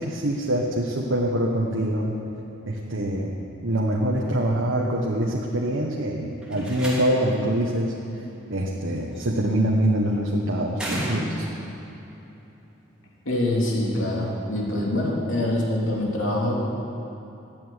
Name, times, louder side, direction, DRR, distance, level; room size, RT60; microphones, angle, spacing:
voice 1, 0.0-2.2 2.7-3.3 3.6-7.9 8.5-11.4, right 1 dB, 75° right, -3 dB, 1.4 m, -24 dB
Slam, 6.4-7.4 9.0-9.4 10.7-11.7, right 1 dB, 5° right, 2.6 m, -32 dB
voice 2, 13.2-16.7, left 1 dB, 80° left, -3 dB, 3.0 m, -25 dB
13.0 x 8.7 x 9.1 m, 3.0 s
head